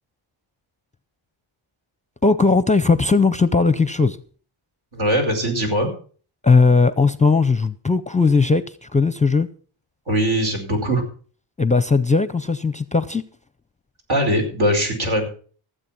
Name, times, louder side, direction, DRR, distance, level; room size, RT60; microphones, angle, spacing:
voice 1, 2.2-4.2 6.4-9.5 11.6-13.2, left 4 dB, 15° left, 0.5 m, -18 dB
voice 2, 4.9-5.9 10.1-11.0 14.1-15.3, equal, 70° right, 5.0 m, -21 dB
15.5 x 7.8 x 6.1 m
cardioid pair, 100°, 48 cm